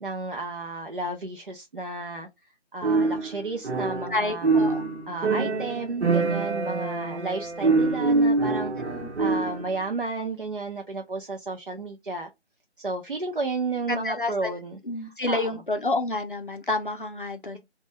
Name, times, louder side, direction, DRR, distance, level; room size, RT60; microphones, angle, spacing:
voice 1, 0.0-2.3 2.7-4.5 5.1-8.7 9.2-12.3 12.8-15.4, right 3 dB, 50° right, 0.4 m, -32 dB
sound 1, 2.8-4.2 4.4-9.7, right 3 dB, 70° right, 0.9 m, -25 dB
voice 2, 4.1-5.0 9.0-9.1 13.9-14.5 14.9-17.6, left 2 dB, 50° left, 0.4 m, -29 dB
2.2 x 2.1 x 2.7 m
figure-of-eight pair, 175°, 35 cm